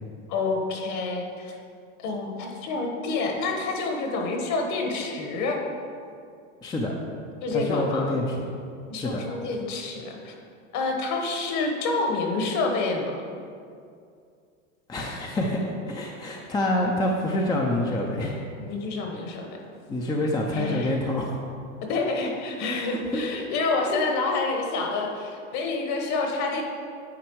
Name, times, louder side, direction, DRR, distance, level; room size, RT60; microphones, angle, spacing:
voice 1, 0.3-1.5 2.0-5.6 7.4-8.2 8.9-10.3 10.7-13.2 18.6-19.5 20.5-20.9 21.8-26.6, left 3 dB, 45° left, 2 dB, 1.3 m, -28 dB
voice 2, 6.6-6.9 7.5-8.5 8.9-9.2 14.9-18.4 19.9-21.3 23.1-23.2, left 1 dB, 10° left, 0 dB, 0.5 m, -27 dB
9.4 x 4.2 x 4.6 m, 2.4 s
supercardioid pair, 120°, 40 cm